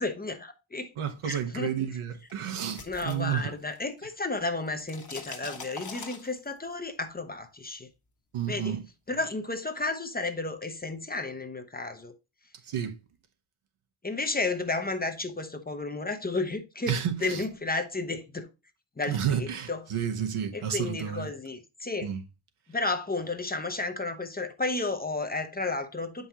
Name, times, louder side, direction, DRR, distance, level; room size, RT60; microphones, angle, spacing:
voice 1, 0.0-0.9 1.2-1.7 2.9-7.9 8.5-8.8 9.1-12.1 14.0-18.5 19.0-19.8 20.5-22.1 22.7-26.3, left 3 dB, 20° left, 0.7 m, -32 dB
voice 2, 1.0-3.5 8.3-8.8 12.7-13.0 16.9-17.4 19.1-21.3 22.0-22.2, right 9 dB, 90° right, 1.2 m, -31 dB
sound 1, 2.3-4.0 4.3-6.7, left 4 dB, 35° left, 1.2 m, -43 dB
8.2 x 5.4 x 2.9 m
wide cardioid pair, 150°, 49 cm